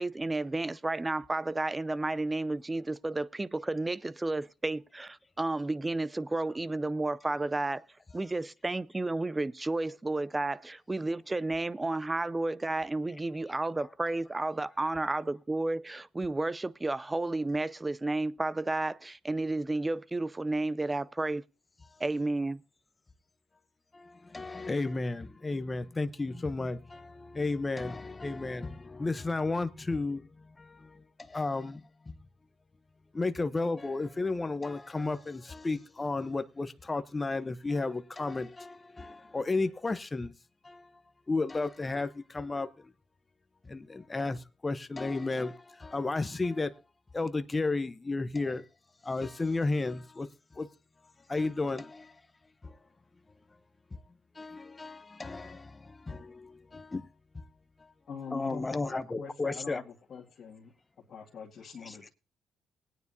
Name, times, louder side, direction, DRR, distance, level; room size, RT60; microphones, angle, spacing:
voice 1, 0.0-7.8 8.1-21.4 22.0-22.6, right 2 dB, 20° right, 0.5 m, -32 dB
voice 2, 23.9-30.2 30.6-31.0 31.3-32.1 33.1-40.3 40.6-40.9 41.3-42.9 43.7-46.7 47.1-48.6 49.0-50.3 50.5-50.7 51.3-52.1 52.6-52.8 54.4-57.1 57.3-57.4 58.3-59.8 61.8-62.0, left 3 dB, 25° left, 0.9 m, -33 dB
voice 3, 58.1-60.7 61.1-62.1, left 5 dB, 60° left, 2.0 m, -44 dB
20.0 x 9.4 x 2.7 m
supercardioid pair, 60°, 0 cm